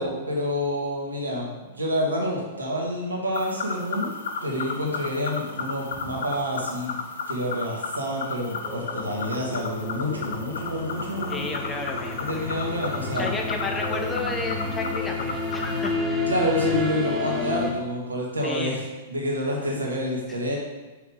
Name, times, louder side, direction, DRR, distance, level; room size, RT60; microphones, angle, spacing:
voice 1, 0.0-4.1 4.4-6.9 7.3-11.4 12.2-13.3 16.3-18.8 19.1-20.6, equal, 80° right, -2 dB, 1.7 m, -28 dB
sound 1, 3.3-16.0, left 5 dB, 60° left, 0.7 m, -34 dB
sound 2, 8.6-17.7, left 2 dB, 5° right, 1.2 m, -30 dB
voice 2, 11.3-12.6 13.1-16.3 18.4-18.8, left 3 dB, 15° left, 2 dB, 1.0 m, -32 dB
6.2 x 5.6 x 3.7 m, 1.2 s
figure-of-eight pair, 100°, 0 cm